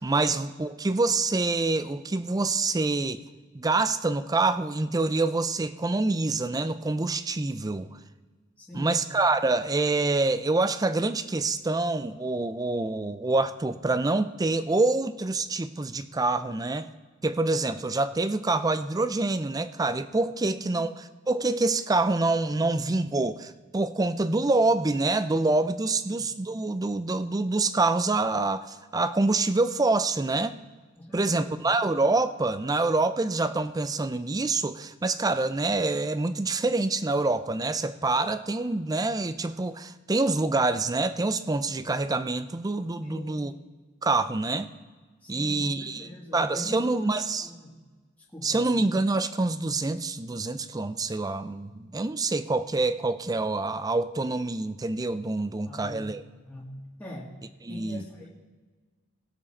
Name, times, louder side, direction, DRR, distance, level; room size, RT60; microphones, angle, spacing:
voice 1, 0.0-3.2 3.5-7.9 8.7-16.9 17.2-30.6 31.1-43.5 44.0-44.7 45.3-47.5 48.4-56.2 57.6-58.0, right 3 dB, 20° right, 12 dB, 0.4 m, -26 dB
voice 2, 8.6-9.0 20.4-20.8 26.0-26.3 31.0-31.5 43.0-43.5 45.2-47.0 47.4-47.7 48.3-48.7 55.6-56.1 56.4-57.3 57.7-58.3, left 1 dB, 10° left, -5 dB, 1.9 m, -42 dB
19.0 x 7.2 x 4.2 m, 1.4 s
head